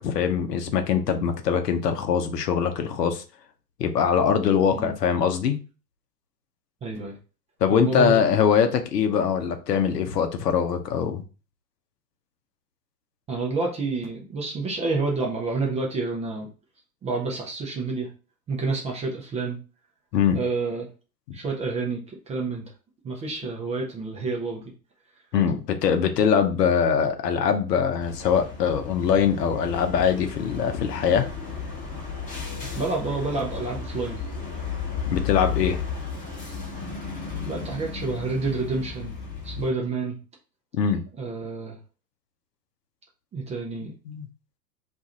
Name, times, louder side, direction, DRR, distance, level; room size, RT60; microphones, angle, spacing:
voice 1, 0.0-3.2 3.8-5.6 7.6-11.2 20.1-20.4 21.3-21.4 25.3-31.3 35.1-35.8 40.7-41.0 44.1-44.3, left 7 dB, 75° left, 0.8 m, -22 dB
voice 2, 6.8-7.2 7.7-8.2 13.3-16.5 17.0-18.1 18.5-19.6 20.3-20.9 21.3-22.7 23.0-24.6 32.7-34.2 37.4-39.2 39.4-40.2 41.2-41.8 43.3-43.9, right 3 dB, 15° right, 0.5 m, -29 dB
sound 1, 28.0-39.7, left 6 dB, 15° left, 1.0 m, -34 dB
2.6 x 2.4 x 4.1 m
hypercardioid pair, 100°, 49 cm